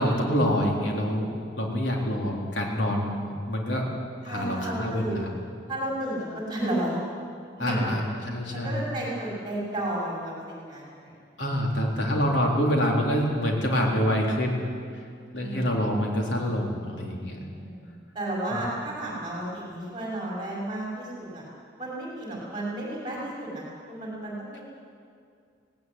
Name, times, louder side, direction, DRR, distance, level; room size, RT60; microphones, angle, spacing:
voice 1, 0.0-3.8 4.2-5.3 7.6-8.0 8.3-8.8 11.4-14.7 15.3-17.4 18.5-18.6, equal, 85° left, 0 dB, 3.8 m, -26 dB
voice 2, 4.2-5.3 5.7-7.0 7.7-7.9 8.5-11.5 12.0-12.3 15.3-15.7 17.5-21.4 21.8-24.6, right 1 dB, 25° right, -4 dB, 5.7 m, -33 dB
17.5 x 17.5 x 9.5 m, 2.2 s
head